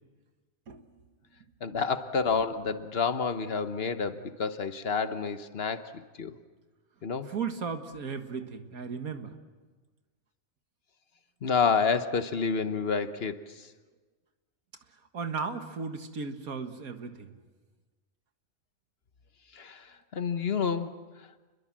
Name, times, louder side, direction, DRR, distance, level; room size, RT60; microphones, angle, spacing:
voice 1, 1.6-6.3 7.0-7.3 11.4-13.7 19.5-21.0, left 5 dB, 50° left, 10 dB, 1.2 m, -29 dB
voice 2, 7.3-9.3 15.1-17.3, right 5 dB, 90° right, 7 dB, 2.1 m, -35 dB
29.0 x 21.5 x 7.5 m, 1.3 s
omnidirectional pair, 1.5 m